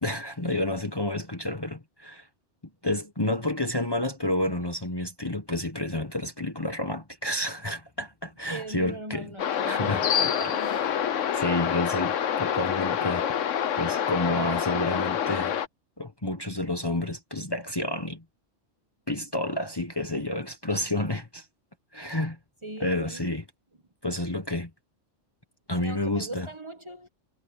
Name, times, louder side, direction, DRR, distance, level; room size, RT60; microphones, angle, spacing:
voice 1, 0.0-2.3 2.8-9.3 9.7-11.0 11.3-13.3 13.8-15.6 16.0-18.2 19.1-21.5 21.9-22.4 22.8-23.4 24.0-24.7 25.7-26.5, left 1 dB, 20° left, 1.3 m, -30 dB
voice 2, 8.5-11.0 22.1-22.2 22.6-23.2 25.8-27.1, right 1 dB, 25° right, 1.4 m, -40 dB
sound 1, 9.4-15.7, left 9 dB, 85° left, 1.2 m, -27 dB
omnidirectional pair, 1.2 m